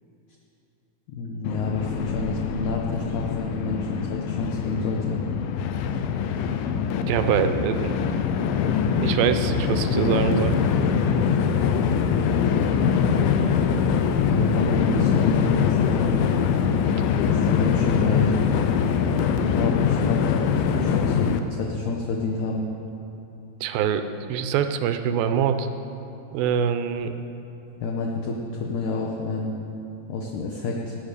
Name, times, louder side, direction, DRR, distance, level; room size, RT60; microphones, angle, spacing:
voice 1, 1.1-5.2 14.2-16.2 17.2-18.3 19.5-21.3 21.6-22.7 27.8-29.6 30.1-31.0, left 3 dB, 65° left, -1 dB, 2.2 m, -29 dB
Train, 1.4-21.4, left 7 dB, 80° left, 2.4 m, -23 dB
voice 2, 7.1-7.9 9.0-10.6 23.6-25.7 26.3-27.1, right 8 dB, 80° right, 9 dB, 2.6 m, -24 dB
19.5 x 8.9 x 6.7 m, 2.9 s
omnidirectional pair, 4.2 m